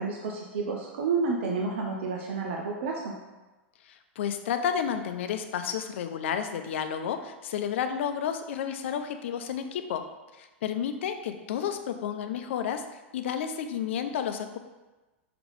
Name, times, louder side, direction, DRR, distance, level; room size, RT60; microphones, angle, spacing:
voice 1, 0.0-3.2, right 4 dB, 70° right, 0 dB, 0.8 m, -30 dB
voice 2, 3.9-10.0 10.4-12.8 13.1-14.6, left 8 dB, 70° left, 8 dB, 0.6 m, -31 dB
5.9 x 3.1 x 5.3 m, 1.1 s
hypercardioid pair, 110°, 7 cm